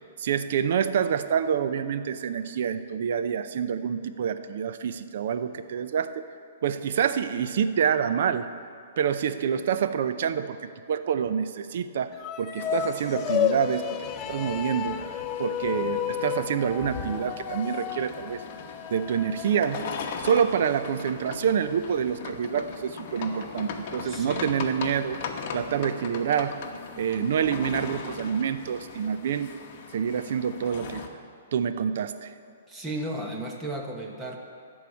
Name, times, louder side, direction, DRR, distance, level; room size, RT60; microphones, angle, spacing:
voice 1, 0.2-6.2 6.6-8.5 9.0-10.6 10.9-14.0 14.3-15.0 15.4-18.4 18.9-19.9 20.2-25.2 25.5-26.6 27.0-29.5 29.9-31.1 31.5-32.3, right 8 dB, 60° right, 11 dB, 0.6 m, -27 dB
sound 1, 12.1-20.6, left 10 dB, 25° left, 0.5 m, -32 dB
sound 2, 12.6-31.1, left 6 dB, 45° left, 1.0 m, -39 dB
voice 2, 24.0-24.5 32.7-34.4, right 1 dB, 15° right, 1 dB, 1.1 m, -34 dB
13.5 x 4.8 x 8.4 m, 2.4 s
hypercardioid pair, 145°, 0 cm